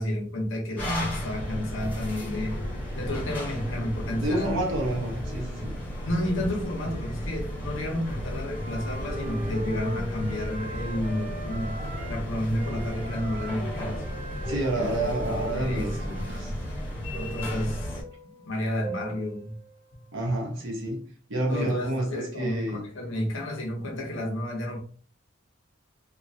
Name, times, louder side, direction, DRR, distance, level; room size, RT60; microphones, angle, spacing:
voice 1, 0.0-2.6 2.9-4.6 6.0-11.8 12.1-14.0 14.8-16.6 17.1-18.0 18.5-19.5 19.9-20.0 21.5-24.8, left 1 dB, 75° left, 0.9 m, -31 dB
sound 1, 0.8-18.0, left 1 dB, 10° left, 1.4 m, -34 dB
voice 2, 4.2-5.7 14.5-16.5 20.1-22.9, right 1 dB, 70° right, 1.0 m, -29 dB
sound 2, 7.7-8.6 9.0-20.1 20.5-20.6, right 2 dB, 25° right, 1.1 m, -45 dB
Wind instrument woodwind instrument, 8.5-12.3 12.5-16.4, equal, 45° right, 0.6 m, -40 dB
3.0 x 2.3 x 2.7 m
head